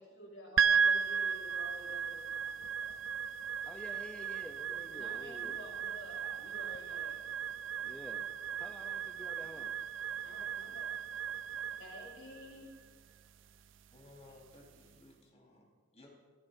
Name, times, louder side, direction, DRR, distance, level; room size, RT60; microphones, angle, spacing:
voice 1, 0.0-3.0 4.9-7.2 10.2-11.0 11.7-12.7, left 1 dB, 70° left, 0 dB, 5.7 m, -51 dB
sound 1, 0.6-14.9, right 6 dB, 70° right, 0.5 m, -36 dB
voice 2, 3.7-5.6 7.8-8.3 8.6-9.8, left 1 dB, 5° left, 3 dB, 0.6 m, -50 dB
voice 3, 13.9-16.1, left 2 dB, 35° left, -1 dB, 4.4 m, -58 dB
26.5 x 16.0 x 2.7 m, 1.5 s
head